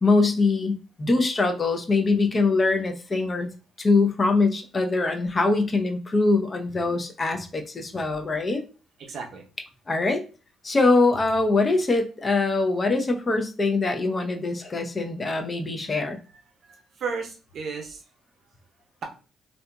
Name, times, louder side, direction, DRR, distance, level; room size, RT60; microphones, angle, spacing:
voice 1, 0.0-3.5 3.8-8.6 9.9-10.2 10.6-16.2, left 3 dB, 35° left, 5 dB, 0.6 m, -23 dB
voice 2, 9.0-9.4 16.6-18.0, right 5 dB, 60° right, 2 dB, 0.7 m, -34 dB
2.7 x 2.4 x 2.2 m, 0.34 s
supercardioid pair, 55°, 0 cm